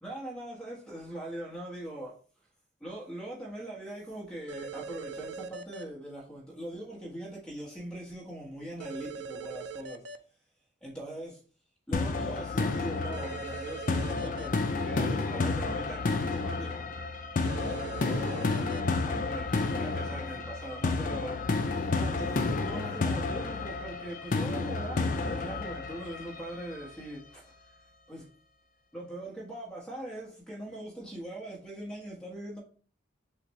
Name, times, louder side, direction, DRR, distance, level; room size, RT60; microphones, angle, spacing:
voice 1, 0.0-2.1 2.8-10.0 10.8-11.4 11.9-16.8 17.4-21.7 22.0-27.5 28.1-28.2 28.9-32.6, right 1 dB, 5° left, 1.3 m, -41 dB
sound 1, 4.5-5.8 8.8-10.2 13.1-14.5 17.4-18.8, right 4 dB, 65° right, 0.4 m, -41 dB
sound 2, 11.9-26.9, left 3 dB, 40° left, 0.4 m, -31 dB
6.5 x 2.5 x 3.1 m
head